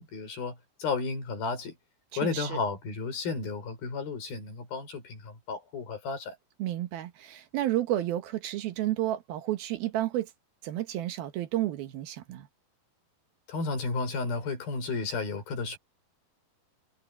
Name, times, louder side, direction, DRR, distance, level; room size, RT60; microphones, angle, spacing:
voice 1, 0.0-1.8 2.2-6.4 13.5-15.8, left 4 dB, 65° left, 7.0 m, -33 dB
voice 2, 2.1-2.6 6.6-10.3 10.6-12.5, right 14 dB, 75° right, 2.9 m, -31 dB
omnidirectional pair, 4.6 m